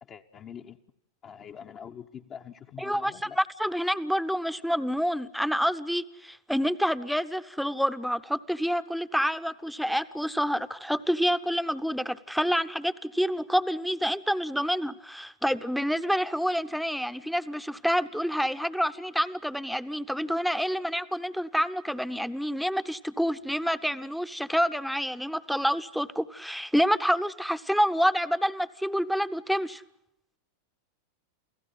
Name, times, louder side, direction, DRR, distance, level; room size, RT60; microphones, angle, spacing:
voice 1, 0.0-0.8 1.2-3.4, left 8 dB, 30° left, 3 dB, 0.9 m, -44 dB
voice 2, 2.8-29.8, equal, ahead, 13 dB, 0.8 m, -28 dB
29.0 x 16.5 x 8.0 m, 0.85 s
figure-of-eight pair, 90°, 0 cm